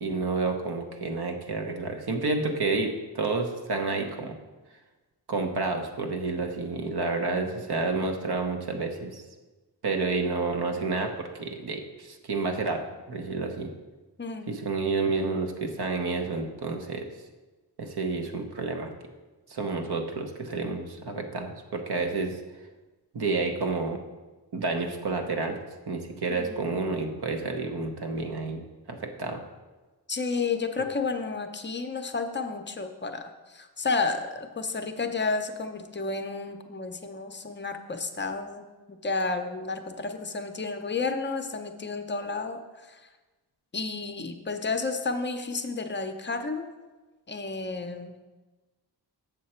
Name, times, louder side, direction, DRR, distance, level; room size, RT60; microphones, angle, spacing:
voice 1, 0.0-4.3 5.3-9.2 9.8-13.7 14.5-17.1 17.8-18.9 19.5-22.4 23.1-24.0 24.5-25.6 25.9-28.6 28.9-29.4, right 3 dB, 65° right, 4 dB, 1.0 m, -30 dB
voice 2, 7.2-7.6 14.2-14.5 26.3-26.6 30.1-43.1 43.7-46.7 47.3-48.2, left 4 dB, 25° left, 6 dB, 0.6 m, -32 dB
7.4 x 6.6 x 4.3 m, 1.2 s
wide cardioid pair, 140°, 41 cm